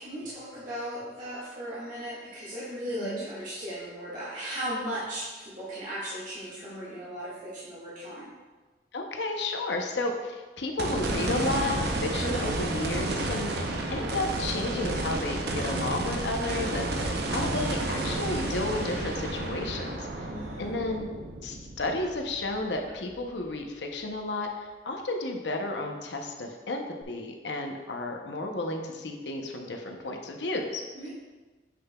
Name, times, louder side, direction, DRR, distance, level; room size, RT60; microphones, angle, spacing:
voice 1, 0.0-8.3 20.3-20.7 30.9-31.1, equal, 45° right, -10 dB, 1.8 m, -37 dB
voice 2, 8.9-13.5 13.9-20.3 20.6-21.1 21.4-30.8, left 2 dB, 75° left, 3 dB, 0.8 m, -32 dB
sound 1, 10.8-23.1 23.6-23.7 27.0-27.1, right 2 dB, 65° right, 0.7 m, -31 dB
7.8 x 6.5 x 2.3 m, 1.3 s
head